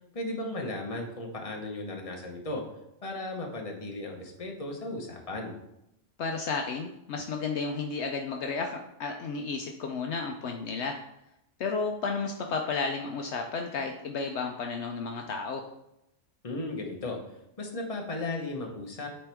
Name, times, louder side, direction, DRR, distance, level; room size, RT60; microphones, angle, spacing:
voice 1, 0.1-2.6 3.0-5.5 16.4-17.2 17.6-19.1, left 2 dB, 30° left, 1 dB, 1.1 m, -35 dB
voice 2, 6.2-11.0 11.6-15.7, left 4 dB, 70° left, 3 dB, 0.9 m, -32 dB
8.8 x 4.3 x 3.5 m, 0.84 s
omnidirectional pair, 1.3 m